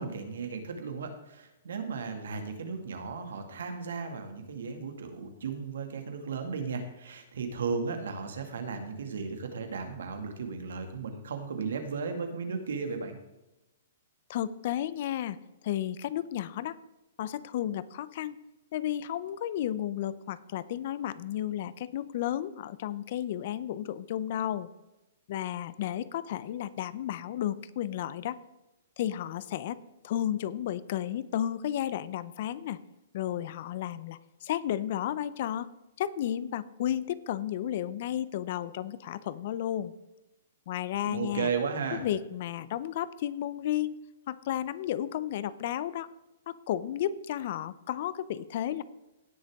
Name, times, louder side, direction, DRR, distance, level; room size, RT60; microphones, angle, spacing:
voice 1, 0.0-13.2 41.0-42.0, right 5 dB, 80° right, 6 dB, 2.1 m, -35 dB
voice 2, 14.3-15.4 15.6-16.8 17.2-18.4 18.7-24.7 25.3-28.4 29.0-29.8 30.0-32.8 33.1-35.7 36.0-39.9 40.7-41.5 42.0-44.0 44.3-46.1 46.5-48.8, left 11 dB, 45° left, 17 dB, 0.6 m, -33 dB
17.0 x 6.6 x 3.6 m, 0.98 s
hypercardioid pair, 160°, 0 cm